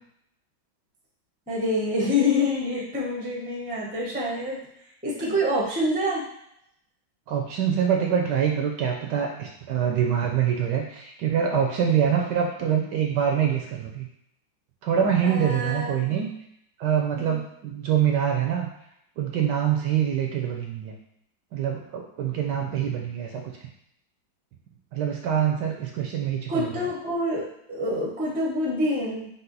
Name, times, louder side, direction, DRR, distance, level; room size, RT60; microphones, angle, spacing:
voice 1, 1.5-4.6 5.0-6.2 15.2-16.2 17.2-17.3 26.5-29.3, left 1 dB, 10° right, -4 dB, 0.4 m, -26 dB
voice 2, 7.3-14.1 14.8-16.3 16.8-18.7 19.2-21.0 21.5-23.5 24.9-26.8, right 8 dB, 75° right, 1 dB, 1.1 m, -25 dB
5.5 x 2.1 x 3.9 m, 0.75 s
omnidirectional pair, 2.2 m